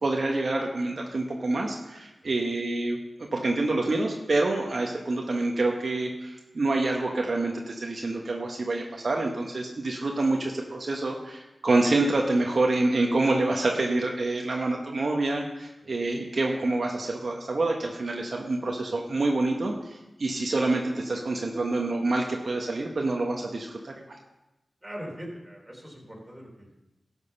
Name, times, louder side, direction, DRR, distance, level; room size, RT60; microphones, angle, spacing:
voice 1, 0.0-24.0, right 2 dB, 60° right, 0 dB, 1.1 m, -27 dB
voice 2, 24.8-26.7, equal, 10° right, -2 dB, 3.5 m, -41 dB
12.5 x 6.6 x 5.5 m, 0.99 s
cardioid pair, 60°, 0 cm